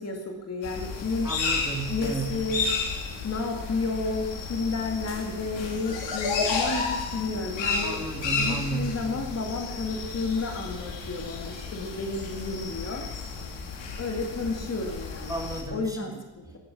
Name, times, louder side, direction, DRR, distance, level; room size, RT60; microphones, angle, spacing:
voice 1, 0.0-1.3 1.9-2.7 3.2-8.0 8.2-13.0 14.0-15.4 15.7-16.1, left 3 dB, 35° left, 2 dB, 2.3 m, -31 dB
sound 1, 0.6-15.6, left 4 dB, 75° left, 3.4 m, -32 dB
voice 2, 1.2-2.5 7.8-9.0 15.3-16.6, right 3 dB, 10° right, 1 dB, 2.3 m, -33 dB
16.0 x 13.5 x 6.2 m, 1.1 s
cardioid pair, 145°, 45 cm